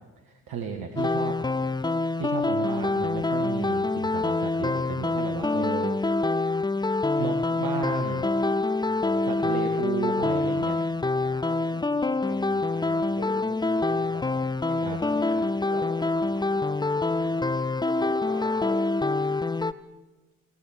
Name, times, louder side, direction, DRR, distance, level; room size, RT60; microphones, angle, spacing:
voice 1, 0.2-1.4 2.2-6.0 7.2-8.3 9.3-10.8 14.8-15.0, right 6 dB, 55° right, 3 dB, 2.0 m, -34 dB
sound 1, 1.0-19.7, left 3 dB, 10° left, 0.8 m, -26 dB
voice 2, 8.9-9.3 11.2-14.4 14.7-17.4 17.8-18.8, equal, 80° right, -1 dB, 6.9 m, -43 dB
22.5 x 17.5 x 6.6 m, 1.2 s
figure-of-eight pair, 45°, 41 cm